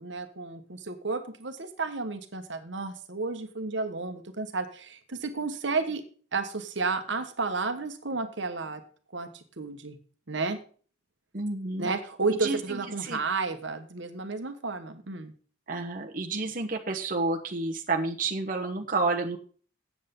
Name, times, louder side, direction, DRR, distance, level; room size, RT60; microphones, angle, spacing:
voice 1, 0.0-6.0 6.3-8.8 9.1-9.3 9.6-10.0 10.3-10.6 11.8-15.3, right 4 dB, 70° right, 8 dB, 1.2 m, -32 dB
voice 2, 11.3-11.9 12.3-13.2 15.7-19.4, right 3 dB, 45° right, 2 dB, 1.1 m, -30 dB
8.4 x 8.1 x 5.3 m, 0.41 s
head